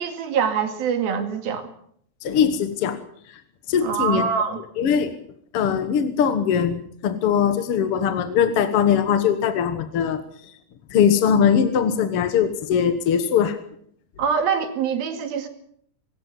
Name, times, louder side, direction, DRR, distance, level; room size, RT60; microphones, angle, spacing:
voice 1, 0.0-1.7 3.8-4.6 14.2-15.5, right 6 dB, 90° right, 7 dB, 4.2 m, -24 dB
voice 2, 2.2-3.0 3.7-4.3 4.8-5.1 5.5-10.2 10.9-13.6, left 8 dB, 55° left, 9 dB, 1.7 m, -21 dB
24.5 x 14.0 x 8.3 m, 0.66 s
omnidirectional pair, 4.1 m